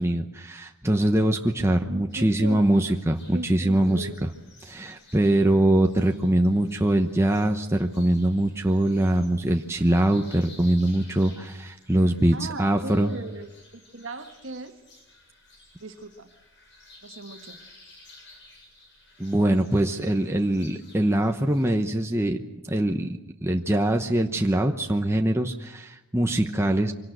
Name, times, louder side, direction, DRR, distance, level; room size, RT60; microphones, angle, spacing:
voice 1, 0.0-4.3 4.6-13.1 19.2-22.4 22.7-26.9, right 1 dB, 10° right, 3 dB, 0.9 m, -23 dB
voice 2, 1.9-2.6 3.3-4.2 12.3-14.7 15.8-16.3 17.0-17.6, right 2 dB, 60° right, 6 dB, 1.7 m, -38 dB
sound 1, 2.1-21.7, left 2 dB, 55° left, 7.7 m, -53 dB
25.0 x 18.0 x 7.9 m, 1.0 s
head